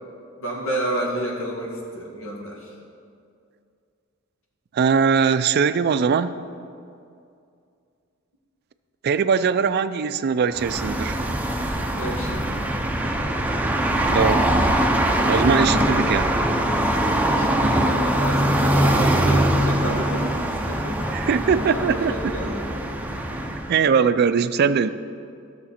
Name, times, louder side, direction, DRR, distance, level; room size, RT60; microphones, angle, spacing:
voice 1, 0.4-2.7 11.9-12.5 17.3-23.0, right 1 dB, 80° left, -2 dB, 2.1 m, -31 dB
voice 2, 4.7-6.3 9.0-11.2 14.1-14.5 15.3-16.4 21.1-22.3 23.7-24.9, right 6 dB, 50° right, 13 dB, 0.4 m, -21 dB
sound 1, 10.5-23.8, right 1 dB, 10° right, 0.6 m, -22 dB
13.5 x 6.8 x 4.3 m, 2.4 s
head